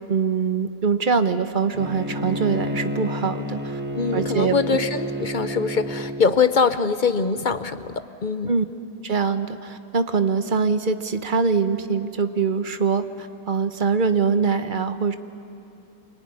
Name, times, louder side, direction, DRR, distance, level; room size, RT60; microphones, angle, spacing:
voice 1, 0.1-3.8 4.1-4.6 8.5-8.6 9.0-15.2, right 5 dB, 40° right, 10 dB, 0.9 m, -23 dB
Bowed string instrument, 1.7-6.3, equal, 10° right, 1.1 m, -29 dB
voice 2, 3.9-8.5, left 5 dB, 45° left, 11 dB, 0.6 m, -23 dB
26.0 x 23.0 x 9.7 m, 2.8 s
omnidirectional pair, 1.7 m